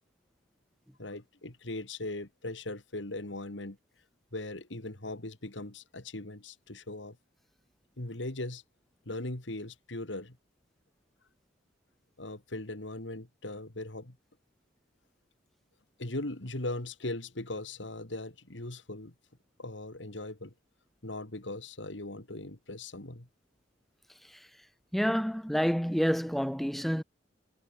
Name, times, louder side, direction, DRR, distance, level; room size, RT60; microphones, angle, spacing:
voice 1, 1.0-3.8 4.3-7.2 8.0-8.6 9.1-10.4 12.2-14.2 16.0-19.1 19.6-20.5 21.0-23.3, left 2 dB, 80° left, 2.6 m, -39 dB
voice 2, 24.9-27.0, equal, ahead, 0.9 m, -28 dB
head